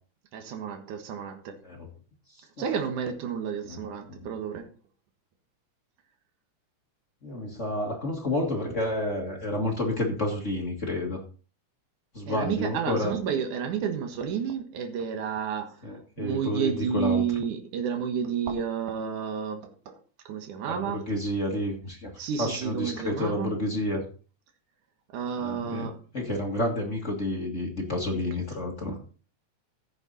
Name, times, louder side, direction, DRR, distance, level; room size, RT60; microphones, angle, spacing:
voice 1, 0.3-1.6 2.6-4.7 12.3-15.8 16.2-20.0 20.3-21.0 22.2-23.5 25.1-26.0, right 7 dB, 80° right, 2.9 m, -31 dB
voice 2, 7.2-11.2 12.1-13.1 15.8-17.2 20.7-22.1 22.4-24.0 25.4-25.9 26.1-28.9, left 1 dB, 30° left, 1.8 m, -30 dB
15.0 x 7.0 x 4.1 m
omnidirectional pair, 3.5 m